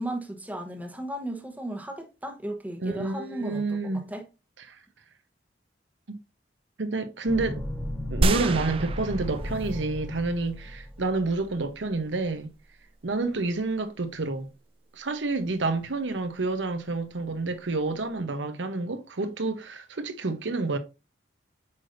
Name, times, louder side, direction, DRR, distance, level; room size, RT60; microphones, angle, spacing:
voice 1, 0.0-4.2, right 1 dB, 10° right, 0.9 m, -35 dB
voice 2, 2.8-4.1 4.7-4.8 6.1-6.2 6.8-7.7 8.1-12.5 13.0-14.5 14.9-20.8, right 3 dB, 85° right, 0.9 m, -29 dB
sound 1, 7.3-11.4, left 1 dB, 5° left, 1.2 m, -35 dB
sound 2, 8.2-10.0 10.5-10.6, right 2 dB, 30° right, 0.3 m, -28 dB
8.3 x 5.1 x 2.6 m
head